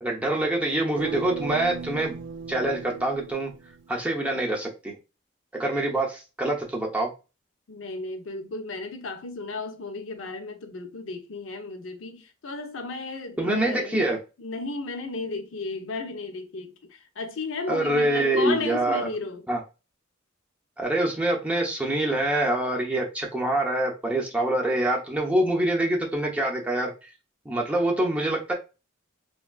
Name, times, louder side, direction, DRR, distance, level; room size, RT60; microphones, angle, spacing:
voice 1, 0.0-2.1 2.5-3.5 3.9-5.0 5.5-7.1 13.4-14.2 17.7-19.1 19.5-19.6 20.8-27.1 27.5-28.5, right 1 dB, 5° right, 0.6 m, -25 dB
sound 1, 1.0-4.0, right 5 dB, 65° right, 0.4 m, -37 dB
voice 2, 7.7-19.4, left 3 dB, 85° left, 0.6 m, -34 dB
3.4 x 2.3 x 2.3 m
head